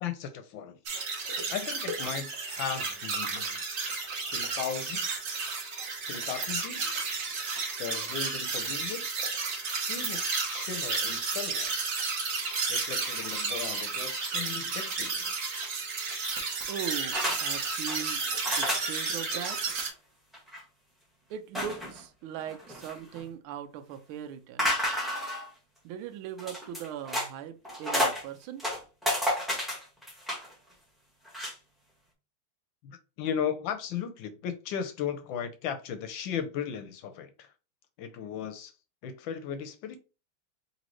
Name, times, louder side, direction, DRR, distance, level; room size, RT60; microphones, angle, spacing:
voice 1, 0.0-0.8 1.5-3.6 4.3-5.1 6.1-6.9 7.8-9.1 9.7-11.8 12.7-15.3 32.8-37.5 38.0-38.7 39.0-40.0, left 8 dB, 75° left, 1.3 m, -36 dB
sound 1, 0.9-19.9, right 4 dB, 55° right, 1.0 m, -32 dB
voice 2, 16.7-18.2 18.6-19.6 21.3-24.7 25.8-28.7, right 9 dB, 80° right, 1.4 m, -39 dB
sound 2, 17.1-17.4 17.7-18.0 18.4-19.1 19.4-19.6 19.9-20.0 20.3-20.6 21.5-22.0 22.5-23.2 24.6-25.5 26.4-27.3 27.6-28.2 28.6-30.5 31.2-31.5, equal, ahead, 0.7 m, -31 dB
4.1 x 3.1 x 2.9 m
omnidirectional pair, 2.3 m